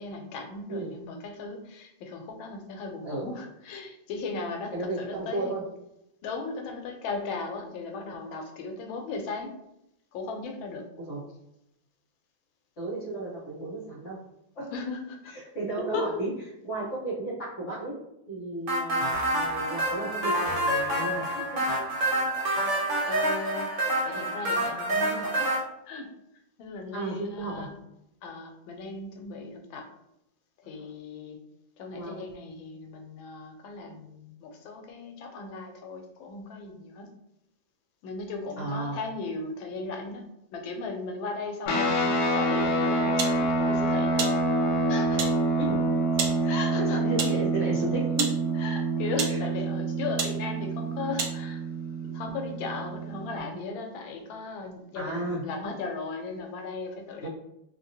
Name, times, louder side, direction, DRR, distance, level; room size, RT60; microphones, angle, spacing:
voice 1, 0.0-5.5 6.2-9.5 10.1-10.8 14.7-15.3 15.8-16.1 23.0-23.7 24.0-26.1 26.6-27.7 28.2-29.9 30.7-31.4 31.8-37.1 38.0-44.2 44.9-45.2 46.4-47.0 48.6-51.6 52.0-57.3, left 3 dB, 90° left, 3 dB, 1.4 m, -37 dB
voice 2, 4.7-5.6 11.0-11.2 12.8-14.2 14.5-14.7 15.2-16.3 16.6-17.9 18.3-21.6 26.9-27.7 30.8-30.9 31.9-32.2 38.6-39.0 45.6-45.8 46.1-48.3 49.3-49.4 54.9-55.4 57.2-57.3, right 2 dB, 45° left, -5 dB, 1.3 m, -34 dB
sound 1, 18.7-25.6, right 1 dB, 50° right, 0.9 m, -27 dB
sound 2, 41.7-53.4, right 2 dB, 70° left, 0.9 m, -27 dB
sound 3, 43.2-43.4 44.2-44.4 45.2-45.4 46.2-46.4 47.2-47.4 48.2-48.4 49.1-49.4 50.2-50.4 51.2-51.4, right 5 dB, 80° right, 1.3 m, -30 dB
3.2 x 2.8 x 2.7 m, 0.82 s
omnidirectional pair, 2.1 m